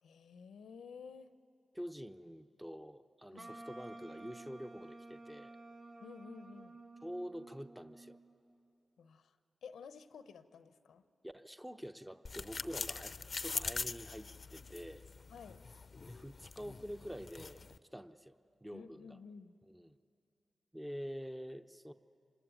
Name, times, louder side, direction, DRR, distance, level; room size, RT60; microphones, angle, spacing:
voice 1, 0.0-1.3 3.3-3.5 6.0-6.8 9.0-11.0 15.3-15.6 18.7-19.6, left 5 dB, 90° left, 11 dB, 0.8 m, -52 dB
voice 2, 1.7-5.6 7.0-8.2 11.2-15.1 16.1-17.6 17.9-19.2 19.7-20.0 20.7-21.9, equal, 10° right, 8 dB, 0.8 m, -47 dB
Wind instrument woodwind instrument, 3.4-8.4, right 2 dB, 75° right, 2.7 m, -52 dB
sound 1, 12.3-17.8, left 4 dB, 50° left, 0.6 m, -43 dB
25.5 x 20.5 x 9.1 m, 2.7 s
cardioid pair, 45°, 0 cm